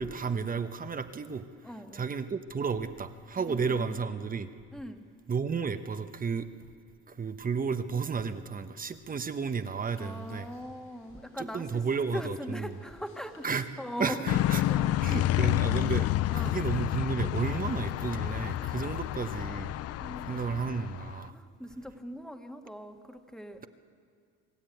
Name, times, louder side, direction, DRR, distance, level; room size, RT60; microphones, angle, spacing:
voice 1, 0.0-1.4 1.9-4.5 5.3-6.5 7.1-10.5 11.4-12.7 13.4-13.7 14.0-14.6 15.0-19.7 20.2-21.3, right 5 dB, 25° right, 9 dB, 1.0 m, -32 dB
voice 2, 1.6-2.1 3.4-4.0 4.7-5.0 10.0-15.2 16.3-16.6 18.8-19.2 20.0-20.4 21.3-23.7, equal, ahead, 5 dB, 1.6 m, -41 dB
sound 1, 9.8-14.9, left 3 dB, 80° left, 7.0 m, -60 dB
sound 2, 14.3-21.2, left 14 dB, 50° left, 0.4 m, -29 dB
25.0 x 13.0 x 9.2 m, 2.2 s
supercardioid pair, 95°, 31 cm